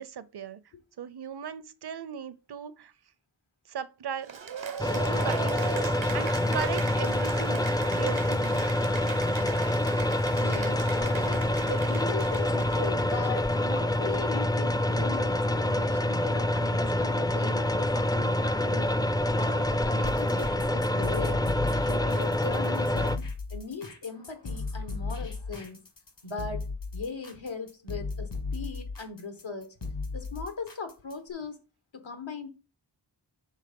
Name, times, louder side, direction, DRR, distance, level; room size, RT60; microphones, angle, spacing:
voice 1, 0.0-0.6 1.0-2.9 3.7-4.3 4.8-5.6 6.1-7.6 7.9-8.7, right 7 dB, 60° right, 0.6 m, -37 dB
Cheering / Applause, 4.2-13.8, right 6 dB, 85° right, 0.9 m, -39 dB
sound 1, 4.8-23.2, left 1 dB, 10° left, 0.3 m, -26 dB
voice 2, 10.4-19.0 19.4-21.4 21.8-23.2 23.5-25.8 26.2-26.7 26.9-29.7 30.1-31.6 31.9-32.5, left 4 dB, 85° left, 1.3 m, -39 dB
sound 2, 20.0-31.3, left 3 dB, 65° left, 1.5 m, -36 dB
6.5 x 3.5 x 5.2 m
wide cardioid pair, 45°, 45 cm